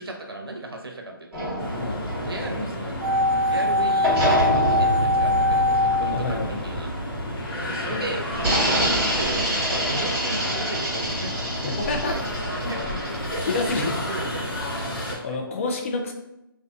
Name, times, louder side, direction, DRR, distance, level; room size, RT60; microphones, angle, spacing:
voice 1, 0.0-1.7 2.0-3.0 3.4-6.9 7.7-13.0 13.3-15.4, right 2 dB, 90° right, 2 dB, 0.6 m, -36 dB
sound 1, 1.3-3.6 4.0-7.7 8.3-14.1, right 1 dB, 20° right, 1.0 m, -27 dB
sound 2, 1.6-15.2, left 1 dB, 70° left, 1.2 m, -31 dB
sound 3, 3.0-7.1 7.4-7.5, left 1 dB, 5° left, 1.1 m, -22 dB
voice 2, 6.1-6.7 7.9-8.1 11.6-12.2 12.6-12.7 13.4-13.9 15.2-16.1, left 3 dB, 35° left, 2 dB, 0.4 m, -28 dB
2.5 x 2.2 x 2.5 m, 0.88 s
figure-of-eight pair, 150°, 12 cm